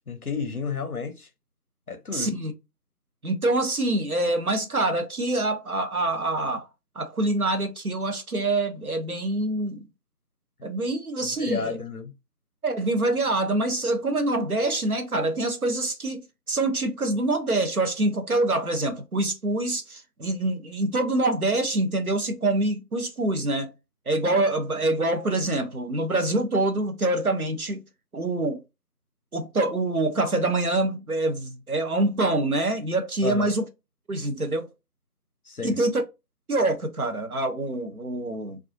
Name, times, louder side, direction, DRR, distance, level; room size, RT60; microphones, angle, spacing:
voice 1, 0.1-1.3 1.9-2.3 11.4-12.1 33.2-33.5 35.5-35.8, left 4 dB, 65° left, 0.6 m, -31 dB
voice 2, 2.1-2.5 3.2-6.7 7.0-9.9 10.6-11.8 12.6-23.7 24.1-27.8 28.1-28.6 29.3-33.7 34.1-34.7 35.6-36.0 36.5-38.6, right 2 dB, 65° right, 0.6 m, -25 dB
2.7 x 2.3 x 2.5 m
figure-of-eight pair, 180°, 49 cm